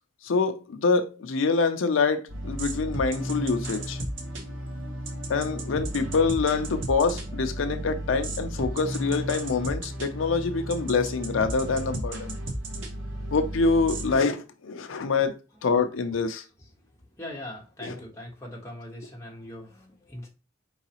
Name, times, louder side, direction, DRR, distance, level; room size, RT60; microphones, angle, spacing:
voice 1, 0.2-4.0 5.3-12.4 13.3-15.4 15.6-16.4 17.8-18.0, left 4 dB, 80° left, 0.5 m, -25 dB
sound 1, 2.3-14.1, right 1 dB, 70° right, 1.2 m, -34 dB
voice 2, 17.2-20.3, left 1 dB, 15° left, 1.2 m, -41 dB
4.7 x 3.9 x 2.9 m
head